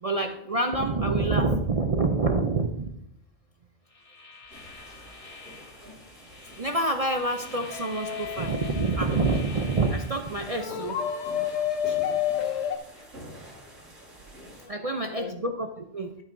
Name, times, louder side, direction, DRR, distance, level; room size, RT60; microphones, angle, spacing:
voice 1, 0.0-2.9 6.6-11.0 14.7-16.1, right 3 dB, 40° right, 5 dB, 0.5 m, -27 dB
sound 1, 3.9-10.7, left 4 dB, 25° left, 1.6 m, -47 dB
sound 2, 4.5-14.7, equal, 70° right, 3.1 m, -47 dB
sound 3, 7.7-9.1 10.5-12.8, left 9 dB, 65° left, 0.9 m, -29 dB
voice 2, 11.4-12.5 12.9-13.2 14.6-15.4, left 4 dB, 80° left, 5 dB, 1.6 m, -49 dB
12.0 x 8.8 x 2.6 m, 0.77 s
omnidirectional pair, 1.3 m